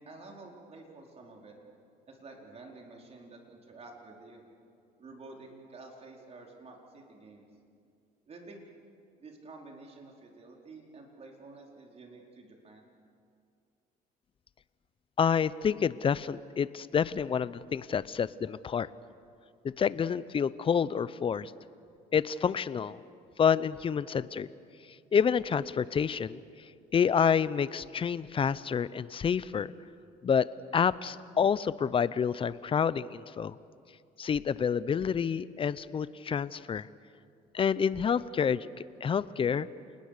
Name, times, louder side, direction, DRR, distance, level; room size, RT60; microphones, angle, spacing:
voice 1, 0.0-1.6 2.1-4.4 5.0-7.5 8.3-8.6 9.2-12.9, right 3 dB, 40° right, 0 dB, 4.5 m, -50 dB
voice 2, 15.2-18.9 19.8-21.5 22.1-23.0 23.4-24.5 25.1-26.4 26.9-29.7 30.2-30.5 30.7-33.6 34.2-36.9 37.5-38.7 39.0-39.7, left 7 dB, 30° left, 17 dB, 0.7 m, -28 dB
29.0 x 20.0 x 6.7 m, 2.3 s
cardioid pair, 110°, 17 cm